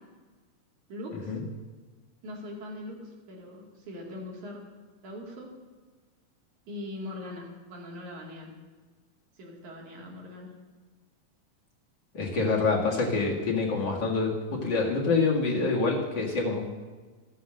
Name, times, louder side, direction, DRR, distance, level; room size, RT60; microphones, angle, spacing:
voice 1, 0.9-1.4 2.2-4.6 5.0-5.5 6.7-8.5 9.4-10.5, left 1 dB, 70° right, -2 dB, 3.7 m, -41 dB
voice 2, 12.1-16.6, left 3 dB, 40° left, -3 dB, 2.1 m, -26 dB
13.0 x 7.7 x 6.5 m, 1.4 s
omnidirectional pair, 3.6 m